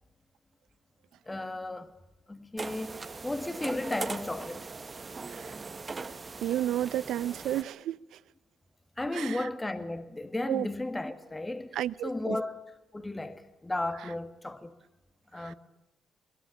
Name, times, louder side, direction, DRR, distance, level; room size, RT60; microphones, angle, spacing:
voice 1, 1.3-1.9 2.3-4.7 9.0-11.8 12.0-12.6 12.9-14.8 15.3-15.5, left 2 dB, 15° left, 2.1 m, -34 dB
sound 1, 2.6-7.6, right 4 dB, 30° right, 1.6 m, -40 dB
voice 2, 6.4-8.2 9.1-9.5 10.5-10.7 11.7-12.4 15.4-15.5, right 12 dB, 80° right, 0.8 m, -32 dB
22.5 x 21.5 x 8.6 m
cardioid pair, 90°, 0 cm